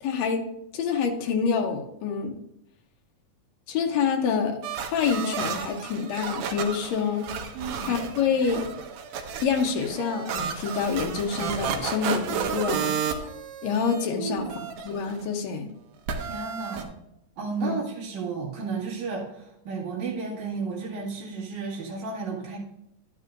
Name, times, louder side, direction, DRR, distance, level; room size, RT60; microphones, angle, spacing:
voice 1, 0.0-0.4 0.7-2.4 3.7-4.6 4.9-7.3 7.8-8.6 9.4-13.0 13.6-15.7 17.6-17.8, left 6 dB, 70° left, 4 dB, 1.8 m, -27 dB
sound 1, 4.6-14.1 14.4-15.2 16.1-16.8, right 7 dB, 80° right, 2.3 m, -32 dB
voice 2, 7.5-8.0 14.2-14.5 16.2-17.0 17.4-22.6, right 4 dB, 60° right, -4 dB, 3.3 m, -33 dB
11.0 x 9.8 x 2.5 m, 0.83 s
omnidirectional pair, 3.8 m